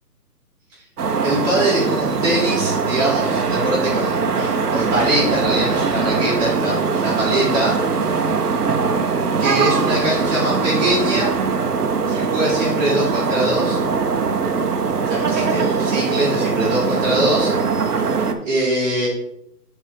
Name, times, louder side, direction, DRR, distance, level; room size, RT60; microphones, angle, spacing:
sound 1, 1.0-18.3, right 5 dB, 70° right, 1.0 m, -21 dB
voice 1, 1.2-7.8 9.4-11.3 12.1-13.8 15.1-17.5 18.4-19.1, right 1 dB, 15° right, -11 dB, 3.0 m, -22 dB
10.5 x 4.5 x 3.4 m, 0.76 s
hypercardioid pair, 170°, 48 cm